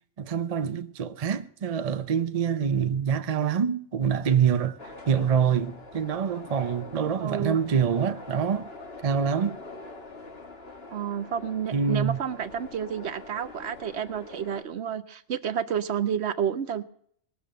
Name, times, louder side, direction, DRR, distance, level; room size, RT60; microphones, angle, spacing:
voice 1, 0.2-4.8 5.1-8.7 9.0-9.6 11.7-12.2, right 7 dB, 40° right, 0.6 m, -25 dB
sound 1, 4.8-14.6, left 3 dB, 50° left, 1.7 m, -44 dB
voice 2, 7.2-7.6 10.9-16.8, right 8 dB, 60° right, 0.9 m, -30 dB
20.0 x 7.0 x 7.5 m
omnidirectional pair, 1.4 m